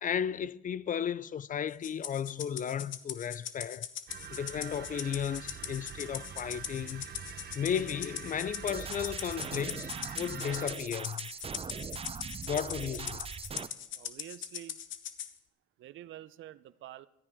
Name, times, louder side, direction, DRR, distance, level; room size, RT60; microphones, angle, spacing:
voice 1, 0.0-3.9 4.3-7.0 7.5-11.3 12.5-13.3, left 8 dB, 40° left, 0.4 m, -34 dB
Rattle (instrument), 1.8-15.3, left 10 dB, 75° left, 1.0 m, -41 dB
sound 1, 4.1-10.7, right 8 dB, 55° right, 1.1 m, -45 dB
sound 2, 8.7-13.7, right 5 dB, 30° right, 0.6 m, -41 dB
voice 2, 13.9-14.8 15.8-17.1, right 13 dB, 80° right, 0.6 m, -47 dB
21.5 x 13.5 x 3.6 m
cardioid pair, 90°, 20 cm